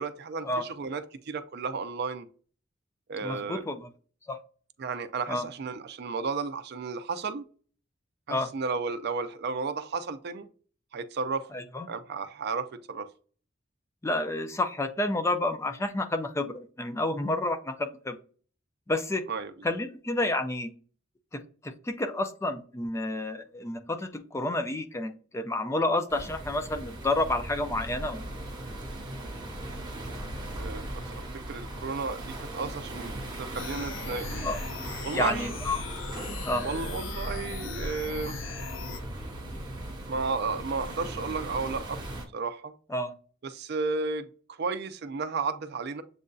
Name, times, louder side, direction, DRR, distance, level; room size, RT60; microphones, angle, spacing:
voice 1, 0.0-2.3 3.1-3.6 4.8-7.4 8.3-10.5 10.9-11.5 11.9-13.1 19.3-19.5 30.6-30.9 31.3-34.5 35.0-35.5 36.6-38.4 40.1-42.0 42.3-42.7 43.4-46.0, right 4 dB, 55° right, 0.4 m, -33 dB
voice 2, 3.2-3.9 4.3-4.4 5.3-5.5 8.3-8.5 11.5-11.9 14.0-18.2 18.9-19.3 19.6-20.7 21.3-28.2 34.4-34.6 35.1-35.8 36.4-36.7 42.9-43.1, left 2 dB, 15° left, 0.4 m, -30 dB
sound 1, 26.1-42.2, right 1 dB, 20° right, 1.1 m, -38 dB
sound 2, 33.5-39.0, left 5 dB, 80° left, 0.5 m, -39 dB
7.3 x 2.6 x 2.3 m
head